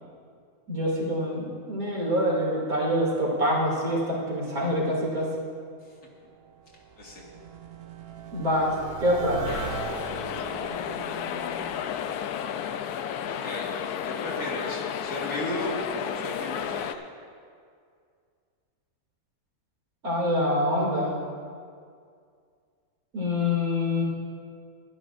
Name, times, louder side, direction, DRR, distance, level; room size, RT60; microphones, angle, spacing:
voice 1, 0.7-5.3 8.3-9.5 20.0-21.2 23.1-24.0, left 1 dB, 70° right, -4 dB, 3.2 m, -25 dB
sound 1, 6.0-13.2, right 7 dB, 55° right, 0.8 m, -40 dB
sound 2, 9.5-16.9, left 9 dB, 85° left, 1.1 m, -32 dB
voice 2, 13.3-13.7 14.0-15.8 16.0-17.0, left 1 dB, 60° left, -3 dB, 2.2 m, -35 dB
21.5 x 11.0 x 2.6 m, 2.2 s
omnidirectional pair, 1.6 m